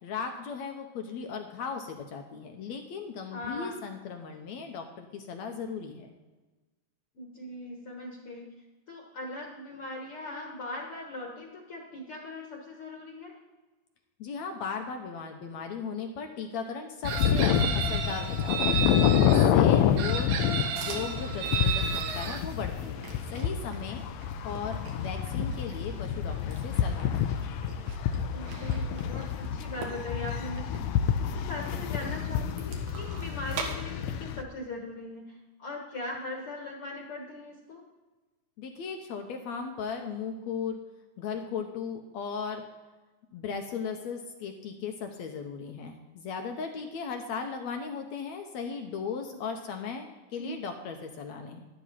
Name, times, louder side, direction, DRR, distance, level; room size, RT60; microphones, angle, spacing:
voice 1, 0.0-6.1 14.2-18.8 19.3-20.4 20.7-24.0 24.4-27.2 38.6-40.8 41.2-42.6 43.3-51.6, left 6 dB, 70° left, 4 dB, 1.9 m, -37 dB
voice 2, 3.3-3.9 7.2-8.5 8.9-13.4 19.6-20.0 28.3-30.8 31.2-37.8 49.3-49.4 50.3-50.6, left 1 dB, 50° left, -1 dB, 2.0 m, -40 dB
sound 1, 17.0-34.4, left 9 dB, 85° left, 1.6 m, -28 dB
Chicken rooster, 17.1-19.5 20.0-22.4, right 7 dB, 85° right, 2.7 m, -32 dB
sound 2, 20.7-33.7, right 4 dB, 65° right, 2.7 m, -45 dB
12.5 x 12.0 x 4.2 m, 1.2 s
omnidirectional pair, 3.9 m